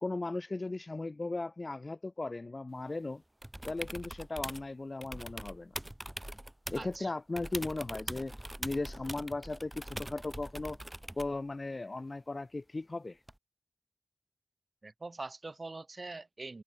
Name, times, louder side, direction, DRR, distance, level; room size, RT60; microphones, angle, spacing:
voice 1, 0.0-3.2 3.7-5.7 6.7-8.3 8.6-10.8 11.2-13.2, left 2 dB, 65° left, 0.4 m, -37 dB
sound 1, 3.4-4.7 5.0-7.0 7.4-11.4 13.3-13.4, right 1 dB, 20° right, 1.5 m, -43 dB
voice 2, 6.7-7.1 14.8-16.6, right 3 dB, 75° right, 0.4 m, -43 dB
wide cardioid pair, 45°, 0 cm